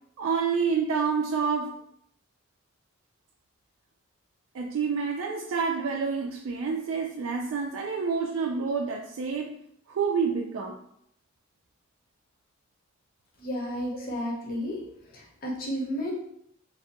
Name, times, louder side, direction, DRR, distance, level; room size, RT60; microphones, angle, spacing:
voice 1, 0.2-1.7 4.5-9.5 9.9-10.8, right 5 dB, 75° right, 0 dB, 0.3 m, -28 dB
voice 2, 13.4-14.8 15.1-16.1, equal, 45° left, -2 dB, 0.7 m, -32 dB
2.6 x 2.2 x 2.8 m, 0.71 s
head